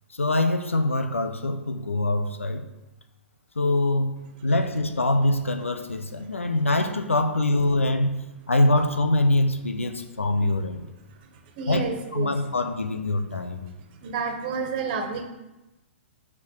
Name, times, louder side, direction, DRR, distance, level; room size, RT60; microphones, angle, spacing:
voice 1, 0.1-2.6 3.5-8.2 8.5-10.9 11.7-11.8 12.1-13.7, left 2 dB, 90° left, 8 dB, 0.9 m, -24 dB
voice 2, 11.5-12.3 14.0-15.2, right 5 dB, 45° right, 5 dB, 1.5 m, -30 dB
7.1 x 4.9 x 6.6 m, 1.0 s
hypercardioid pair, 120°, 7 cm